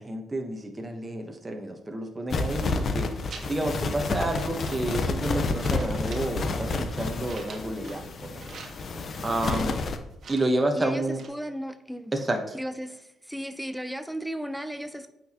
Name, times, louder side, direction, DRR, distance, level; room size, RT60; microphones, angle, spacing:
voice 1, 0.0-3.1 3.5-8.5 9.2-9.8 10.3-11.2 12.1-12.6, right 1 dB, 20° right, 3 dB, 1.0 m, -30 dB
sound 1, 2.3-10.0, left 3 dB, 50° left, 0.8 m, -30 dB
sound 2, 3.1-3.8 4.1-5.4 5.6-8.1 8.3-9.1 9.4-10.7 11.0-11.3, right 4 dB, 55° right, 1.5 m, -47 dB
voice 2, 10.7-12.1 12.5-15.1, equal, ahead, 9 dB, 0.7 m, -35 dB
8.4 x 6.1 x 2.9 m, 0.89 s
cardioid pair, 90°, 0 cm